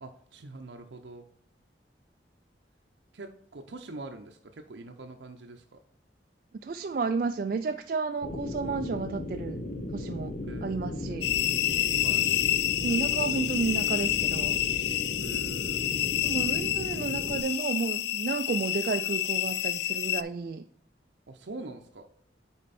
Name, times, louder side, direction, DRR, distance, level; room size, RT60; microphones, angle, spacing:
voice 1, 0.0-1.2 3.1-4.4 4.7-5.8 10.4-11.1 12.0-12.3 15.2-16.0 21.3-22.0, right 2 dB, 80° right, 4 dB, 0.6 m, -44 dB
voice 2, 6.6-9.6 9.9-10.3 10.6-11.3 12.8-14.6 16.2-20.6, right 4 dB, 50° right, 7 dB, 0.3 m, -31 dB
sound 1, 8.2-17.4, left 2 dB, 45° left, 0.7 m, -36 dB
sound 2, 11.2-20.2, left 14 dB, 75° left, 0.4 m, -28 dB
8.6 x 4.3 x 4.1 m, 0.63 s
head